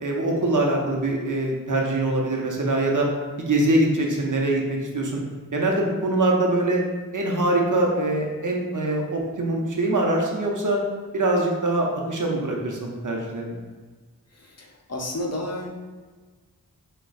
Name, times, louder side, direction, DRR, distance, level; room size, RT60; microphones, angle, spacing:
voice 1, 0.0-3.1 3.4-5.2 5.5-6.8 7.1-10.8 11.1-13.6, right 2 dB, 60° right, -1 dB, 0.8 m, -23 dB
voice 2, 14.4-15.7, left 1 dB, 45° left, -1 dB, 0.7 m, -31 dB
6.0 x 2.3 x 2.5 m, 1.4 s
wide cardioid pair, 45°, 35 cm